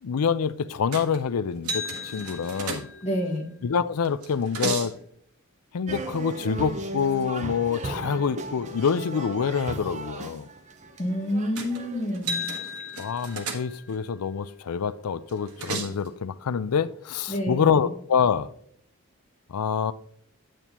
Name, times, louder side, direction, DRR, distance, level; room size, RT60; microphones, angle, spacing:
voice 1, 0.0-1.8 2.1-2.9 3.6-4.9 5.7-10.5 13.0-18.5 19.5-19.9, left 6 dB, 90° left, 0.5 m, -26 dB
sound 1, 0.9-1.2 1.6-3.3 4.0-5.0 11.6-11.8 12.1-14.0 15.3-16.1, right 2 dB, 80° right, 1.3 m, -33 dB
voice 2, 3.0-3.5 11.0-12.5 17.3-17.9, equal, 30° left, 1.8 m, -28 dB
sound 2, 5.9-12.2, right 2 dB, 30° right, 0.7 m, -36 dB
9.0 x 8.2 x 3.0 m
head